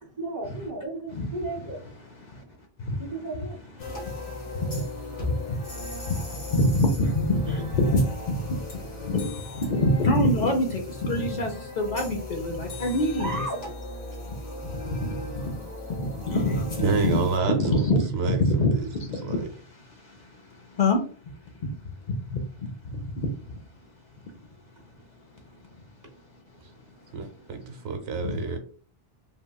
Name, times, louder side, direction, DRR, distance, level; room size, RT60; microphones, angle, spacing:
voice 1, 0.0-2.1 2.4-2.5 3.0-4.1 7.5-7.6 13.2-13.6 14.1-14.2 26.0-26.1, right 1 dB, 20° right, 0.7 m, -35 dB
voice 2, 2.0-2.4 2.8-3.0 3.8-13.4 14.2-14.3 14.6-15.2 15.4-15.6 15.9-21.0 21.6-23.6 28.2-28.4, left 1 dB, 55° left, 0.5 m, -27 dB
sound 1, 3.8-17.4, left 2 dB, 90° left, 1.4 m, -37 dB
voice 3, 16.8-18.4 18.7-18.9 19.2-19.5 27.1-28.6, right 4 dB, 80° right, 0.9 m, -28 dB
3.5 x 2.1 x 2.2 m
omnidirectional pair, 1.0 m